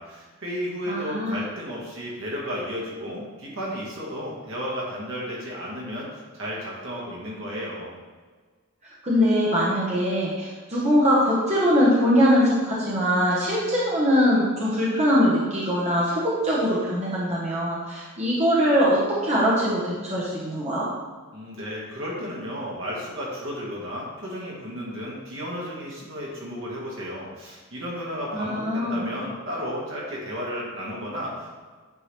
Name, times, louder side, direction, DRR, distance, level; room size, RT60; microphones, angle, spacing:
voice 1, 0.0-7.9 21.3-31.6, equal, 65° right, -4 dB, 1.7 m, -33 dB
voice 2, 0.9-1.4 9.0-20.9 28.3-29.0, equal, 30° right, -7 dB, 1.3 m, -22 dB
8.8 x 3.9 x 3.4 m, 1.5 s
head